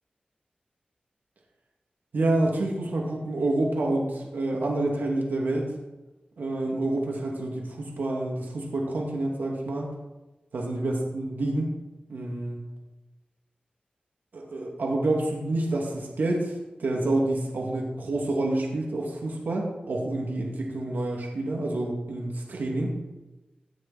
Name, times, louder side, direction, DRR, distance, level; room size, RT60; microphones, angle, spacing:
voice 1, 2.1-5.7 6.4-9.9 10.5-11.7 12.1-12.6 14.3-22.9, right 2 dB, 90° right, -1 dB, 2.5 m, -28 dB
17.0 x 9.6 x 4.3 m, 1.0 s
cardioid pair, 50°, 3 cm